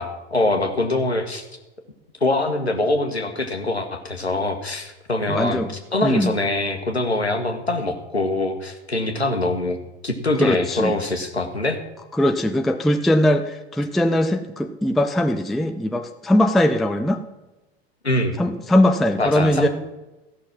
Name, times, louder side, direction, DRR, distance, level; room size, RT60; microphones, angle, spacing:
voice 1, 0.0-1.4 2.2-5.6 5.9-9.8 10.0-11.8 18.0-18.4 19.2-19.7, left 2 dB, 90° left, 5 dB, 1.3 m, -23 dB
voice 2, 5.3-5.7 6.0-6.3 10.4-11.0 12.1-17.2 18.4-19.7, left 1 dB, ahead, 6 dB, 0.4 m, -20 dB
15.0 x 6.1 x 5.9 m, 1.0 s
figure-of-eight pair, 85°, 31 cm